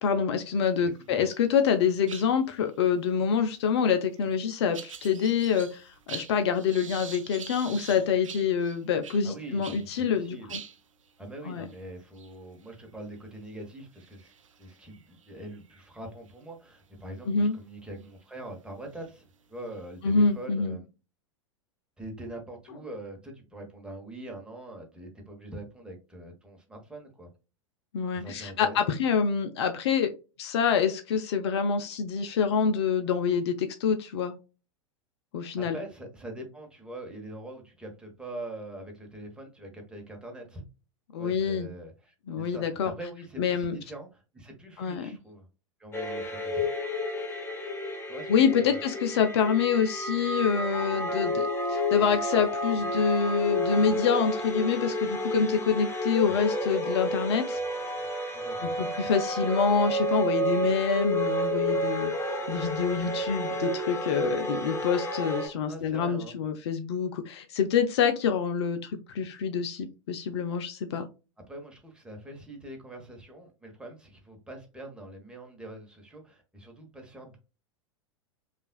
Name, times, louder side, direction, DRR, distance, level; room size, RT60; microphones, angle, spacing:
voice 1, 0.0-10.6 11.5-11.6 17.3-17.6 20.0-20.8 27.9-30.1 30.4-34.3 35.3-35.8 41.1-41.7 42.3-42.9 43.4-43.8 44.8-45.1 48.3-57.6 58.8-62.1 62.5-71.1, left 6 dB, 55° left, 8 dB, 0.6 m, -26 dB
voice 2, 0.8-1.3 7.9-8.0 9.2-10.6 11.2-14.3 14.6-20.9 22.0-27.3 28.1-28.9 35.6-40.6 41.2-45.5 45.8-46.7 48.1-48.8 56.3-56.4 58.3-58.7 65.7-66.4 71.5-77.4, right 1 dB, 5° right, 1 dB, 1.1 m, -43 dB
sound 1, 1.0-1.4 1.7-9.9 10.2-10.3 10.5-16.3 16.9-17.1 18.0-18.1 18.7-20.4, right 7 dB, 75° right, 0.6 m, -46 dB
sound 2, 45.9-65.5, left 1 dB, 15° left, 0.8 m, -30 dB
5.3 x 2.5 x 2.2 m, 0.31 s
figure-of-eight pair, 90°, 17 cm